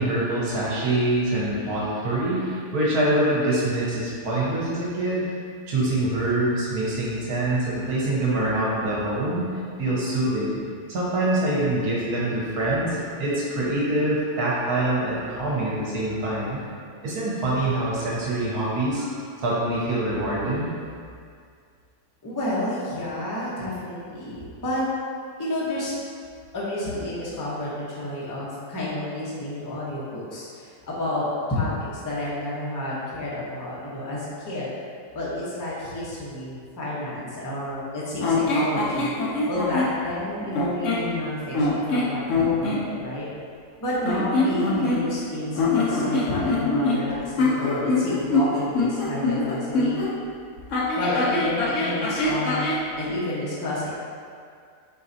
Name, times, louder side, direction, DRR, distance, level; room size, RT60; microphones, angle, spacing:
voice 1, 0.0-5.3 5.7-9.5 9.8-10.6 10.9-16.6 17.0-20.7, right 1 dB, 65° right, -6 dB, 1.4 m, -25 dB
voice 2, 22.2-24.8 25.4-26.0 26.5-34.7 35.1-43.3 43.8-50.1 50.9-52.7 53.0-53.9, left 1 dB, 20° left, -7 dB, 0.5 m, -30 dB
sound 1, 38.2-39.9 40.5-41.1 41.5-42.8 44.0-45.2 45.5-50.1 50.7-52.8, left 2 dB, 60° left, 0.9 m, -23 dB
4.7 x 4.0 x 2.7 m, 2.2 s
omnidirectional pair, 1.7 m